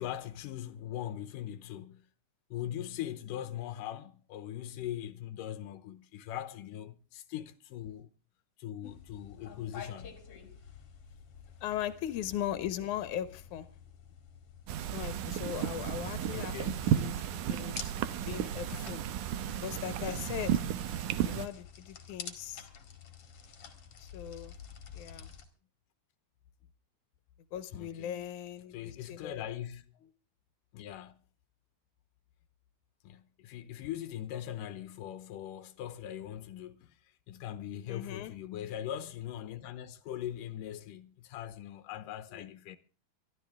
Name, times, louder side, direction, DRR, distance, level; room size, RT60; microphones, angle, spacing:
voice 1, 0.0-2.1 2.5-8.1 8.6-10.2 16.3-17.0 27.7-28.2 28.7-29.8 30.7-31.2 33.0-42.8, left 11 dB, 90° left, 2.5 m, -41 dB
sound 1, 8.8-25.5, left 6 dB, 50° left, 2.7 m, -50 dB
voice 2, 11.6-13.7 14.8-16.5 16.9-17.8 18.3-19.0 19.6-20.6 21.3-22.7 24.0-24.5 24.9-25.3 27.5-29.4 37.9-38.3 42.3-42.5, left 11 dB, 70° left, 2.5 m, -39 dB
sound 2, 14.7-21.5, right 10 dB, 80° right, 2.3 m, -33 dB
24.0 x 13.0 x 3.5 m
omnidirectional pair, 3.6 m